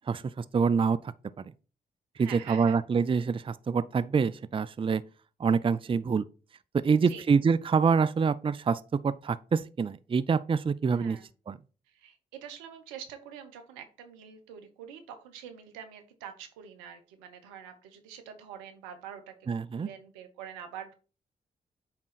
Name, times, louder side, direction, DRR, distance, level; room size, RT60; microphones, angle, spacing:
voice 1, 0.1-1.4 2.2-5.0 5.4-6.3 6.7-11.2 11.5-11.6 19.5-19.9, right 5 dB, 25° right, 0.4 m, -26 dB
voice 2, 2.2-2.8 6.9-7.3 10.9-11.3 11.9-19.3 19.7-20.9, right 8 dB, 85° right, 0.8 m, -45 dB
8.6 x 3.7 x 4.1 m
hypercardioid pair, 40°, 20 cm